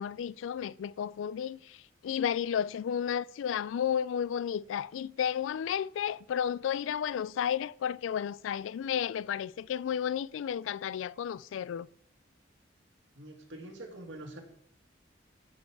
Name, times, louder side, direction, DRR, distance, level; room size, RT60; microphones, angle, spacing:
voice 1, 0.0-1.8 2.0-11.9, left 8 dB, 80° left, 0.3 m, -32 dB
voice 2, 13.2-14.4, right 1 dB, 75° right, 2.1 m, -45 dB
15.5 x 5.3 x 4.7 m
head